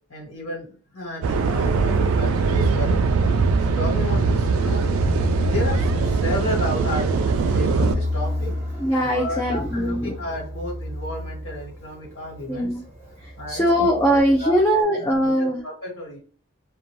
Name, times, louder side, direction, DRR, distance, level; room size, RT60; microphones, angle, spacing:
voice 1, 0.1-3.0 3.6-4.8 5.1-8.5 9.0-12.7 13.4-13.6 14.4-14.6 15.0-16.2, left 1 dB, 70° left, -4 dB, 1.5 m, -32 dB
sound 1, 1.2-8.0, right 4 dB, 80° right, 0.3 m, -21 dB
Fixed-wing aircraft airplane, 1.3-14.8, left 2 dB, 10° right, 0.8 m, -32 dB
voice 2, 8.8-10.2 12.5-12.8 13.2-15.6, equal, 10° left, -1 dB, 0.3 m, -21 dB
2.6 x 2.2 x 3.0 m, 0.40 s
head